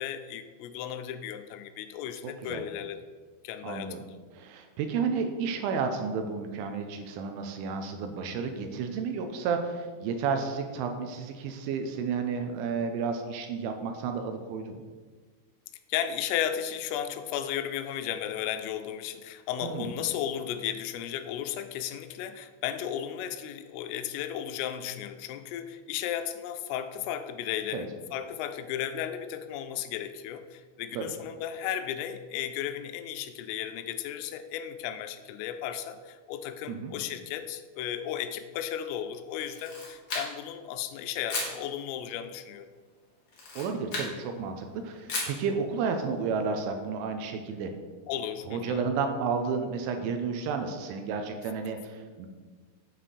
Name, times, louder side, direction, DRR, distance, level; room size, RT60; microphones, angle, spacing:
voice 1, 0.0-3.0 3.4-4.2 15.9-42.7 48.1-48.8, left 10 dB, 85° left, 9 dB, 3.2 m, -34 dB
voice 2, 3.6-4.0 4.3-14.8 19.6-19.9 27.7-27.9 31.0-31.1 36.7-36.9 43.5-47.7 48.5-52.3, right 5 dB, 85° right, 5 dB, 2.9 m, -32 dB
Camera, 39.4-40.6 41.3-41.6 43.3-44.1 45.1-45.4, left 2 dB, 60° left, 1.4 m, -34 dB
8.0 x 5.7 x 6.8 m, 1.5 s
omnidirectional pair, 5.9 m